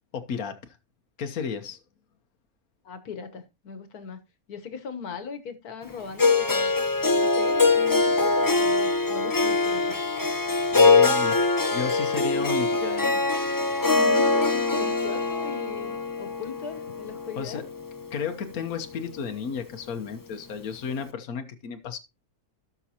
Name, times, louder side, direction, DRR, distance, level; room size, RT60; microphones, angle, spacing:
voice 1, 0.1-0.6 1.2-1.8 10.7-11.5 11.7-13.2 17.4-17.7 18.1-22.0, left 6 dB, 70° left, 1.4 m, -33 dB
voice 2, 2.9-4.2 4.5-6.7 7.2-10.0 12.3-12.5 13.9-17.7, left 6 dB, 90° left, 1.7 m, -39 dB
Harp, 6.2-18.3, left 3 dB, 25° left, 0.5 m, -23 dB
17.5 x 6.0 x 2.8 m
omnidirectional pair, 1.6 m